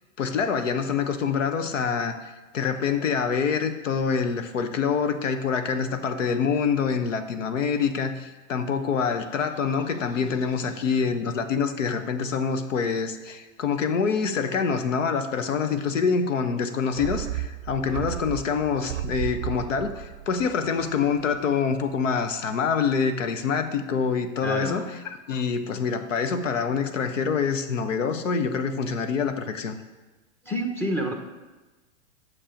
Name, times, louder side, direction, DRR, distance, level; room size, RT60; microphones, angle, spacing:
voice 1, 0.2-2.2 2.5-24.8 25.3-29.8, left 6 dB, 85° left, 9 dB, 1.0 m, -26 dB
sound 1, 16.9-21.6 21.8-21.9, right 13 dB, 70° right, 0.5 m, -34 dB
voice 2, 24.4-24.9 30.4-31.1, equal, 5° left, 3 dB, 1.1 m, -28 dB
8.8 x 6.6 x 5.1 m, 1.2 s
hypercardioid pair, 115°, 37 cm